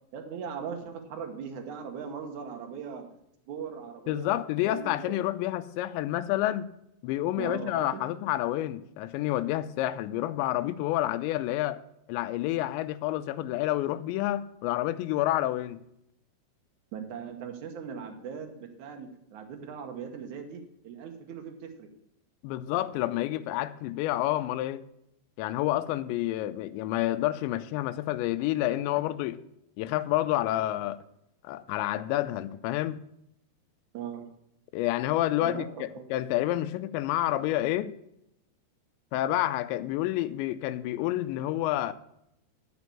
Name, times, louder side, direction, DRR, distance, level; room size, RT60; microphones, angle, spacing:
voice 1, 0.1-3.0 3.5-4.4 4.6-5.2 7.4-8.0 16.9-21.9 33.9-34.3 35.4-35.7 35.9-36.0, right 7 dB, 75° right, 1.7 m, -39 dB
voice 2, 4.1-6.7 7.0-11.8 12.1-15.8 22.4-24.8 25.4-29.4 29.8-31.0 31.4-33.0 34.7-37.9 39.1-41.9, left 14 dB, 90° left, 2.8 m, -29 dB
12.0 x 5.2 x 7.0 m
omnidirectional pair, 5.1 m